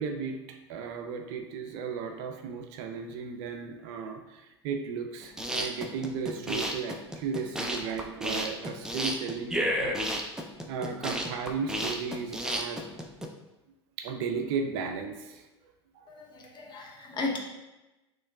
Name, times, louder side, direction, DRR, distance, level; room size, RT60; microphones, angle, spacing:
voice 1, 0.0-10.0 10.7-12.9 14.0-15.5 15.9-16.1, right 5 dB, 55° right, 5 dB, 0.5 m, -35 dB
sound 1, 5.2-13.3, equal, 5° right, 0.5 m, -32 dB
voice 2, 16.1-17.4, left 3 dB, 30° left, 0 dB, 0.9 m, -35 dB
6.3 x 3.1 x 2.3 m, 1.0 s
hypercardioid pair, 80°, 15 cm